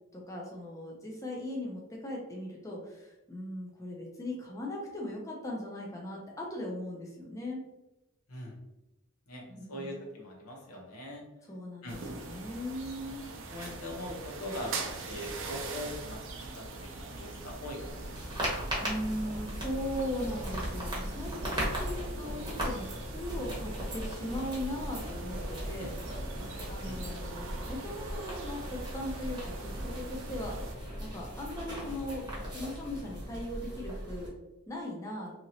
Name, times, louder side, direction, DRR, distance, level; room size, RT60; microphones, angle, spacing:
voice 1, 0.1-7.6 9.5-10.0 11.5-13.2 18.8-26.0 26.7-30.6 31.0-32.3 32.5-34.3 34.7-35.3, left 1 dB, 15° left, -2 dB, 0.4 m, -39 dB
voice 2, 9.3-11.2 11.8-12.0 13.5-16.2 16.5-16.6 17.0-18.5 25.8-25.9 26.8-27.0, left 1 dB, 85° left, -1 dB, 0.9 m, -41 dB
sound 1, 11.9-30.7, right 3 dB, 60° right, 0.5 m, -42 dB
sound 2, 17.9-34.3, equal, 20° right, 0.8 m, -38 dB
2.9 x 2.8 x 2.7 m, 0.97 s
head